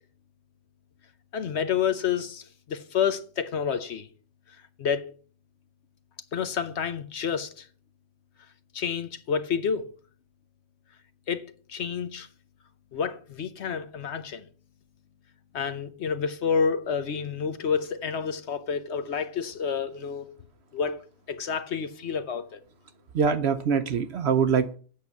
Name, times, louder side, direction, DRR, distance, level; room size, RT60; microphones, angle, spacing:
voice 1, 1.3-4.1 4.8-5.0 6.3-7.7 8.7-9.8 11.3-11.4 11.7-12.3 12.9-14.5 15.5-20.3 20.7-21.0 21.3-22.6, left 6 dB, 60° left, 1.0 m, -29 dB
voice 2, 23.1-24.8, right 6 dB, 60° right, 0.8 m, -24 dB
8.6 x 6.7 x 7.2 m
omnidirectional pair, 1.4 m